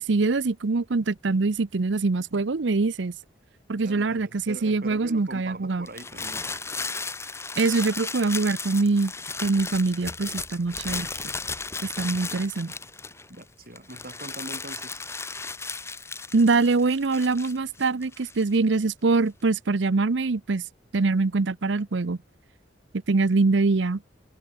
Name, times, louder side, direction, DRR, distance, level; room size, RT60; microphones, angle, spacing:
voice 1, 0.0-3.1 3.7-5.9 7.6-9.1 9.4-11.1 11.8-12.7 16.3-20.6 20.9-22.2 23.1-24.0, right 3 dB, 70° right, 0.7 m, -24 dB
voice 2, 3.7-6.5 13.3-15.0, right 1 dB, 50° right, 6.6 m, -42 dB
sound 1, 5.9-13.4 13.8-18.6, left 4 dB, 15° left, 3.0 m, -35 dB
head